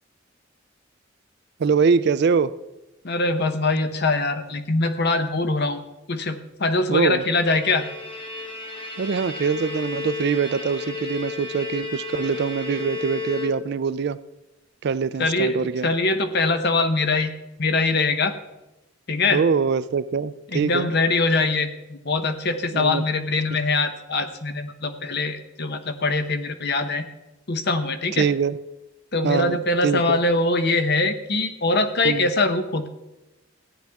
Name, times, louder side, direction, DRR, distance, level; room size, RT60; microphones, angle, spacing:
voice 1, 1.6-2.5 6.9-7.2 9.0-14.2 14.8-15.9 19.3-20.9 22.7-23.0 23.5-23.6 28.1-28.6 29.2-30.2 32.0-32.3, right 5 dB, 55° right, 15 dB, 0.4 m, -23 dB
voice 2, 3.0-5.8 6.1-7.9 15.2-17.3 17.6-18.3 19.1-19.4 20.5-27.0 27.5-28.3 29.1-32.9, left 3 dB, 55° left, 8 dB, 0.9 m, -23 dB
Bowed string instrument, 7.0-14.0, left 4 dB, 25° left, 1.4 m, -33 dB
15.0 x 9.0 x 3.5 m, 1.0 s
head